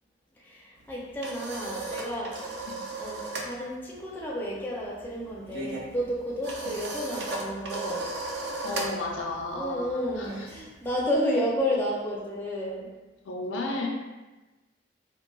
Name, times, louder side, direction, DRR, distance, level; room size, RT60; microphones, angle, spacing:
voice 1, 0.4-2.6 3.0-8.1 9.5-12.9, equal, 10° left, -5 dB, 0.4 m, -31 dB
sound 1, 0.8-3.5 3.8-4.1 4.4-11.0, right 2 dB, 65° right, 0.4 m, -36 dB
voice 2, 8.6-10.5 13.2-13.9, left 2 dB, 75° left, 0 dB, 0.4 m, -33 dB
3.7 x 2.1 x 2.3 m, 1.1 s
head